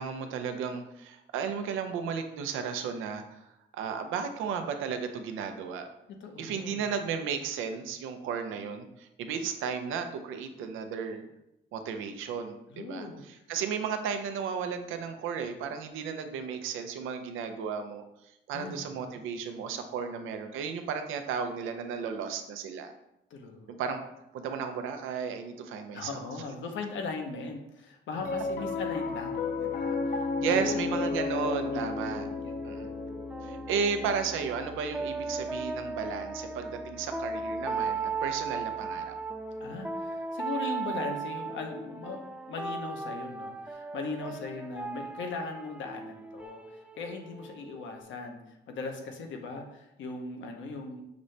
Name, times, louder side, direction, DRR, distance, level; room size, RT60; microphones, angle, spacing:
voice 1, 0.0-3.5 3.7-5.9 6.4-11.2 11.7-18.0 18.5-22.9 23.8-24.0 24.3-26.1 30.4-32.3 32.6-32.9 33.4-39.1, right 6 dB, 90° right, 7 dB, 0.6 m, -34 dB
voice 2, 6.1-6.8 12.7-13.2 18.5-19.2 23.3-23.7 25.9-30.8 31.7-33.0 39.6-51.0, left 3 dB, 70° left, 4 dB, 0.8 m, -39 dB
Piano, 28.2-38.7, left 4 dB, 45° left, 0.6 m, -35 dB
sound 1, 30.6-48.0, right 4 dB, 5° right, 0.3 m, -38 dB
6.0 x 2.7 x 3.2 m, 0.85 s
cardioid pair, 90°, 20 cm